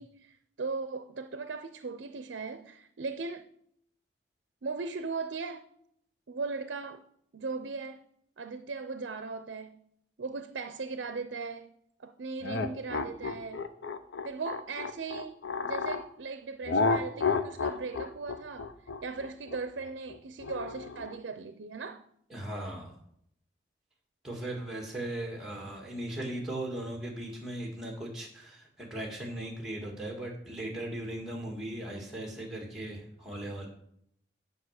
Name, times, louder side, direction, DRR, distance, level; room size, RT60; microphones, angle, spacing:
voice 1, 0.0-3.5 4.6-5.7 6.3-7.0 7.3-8.1 8.4-9.9 10.2-11.7 12.0-13.7 14.2-18.7 19.0-22.1, right 4 dB, 70° right, 0.5 m, -38 dB
sound 1, 12.4-16.0 16.7-21.2, left 4 dB, 75° left, 0.7 m, -31 dB
voice 2, 22.3-23.0 24.2-33.7, right 1 dB, ahead, 1.9 m, -38 dB
9.6 x 5.3 x 6.4 m
head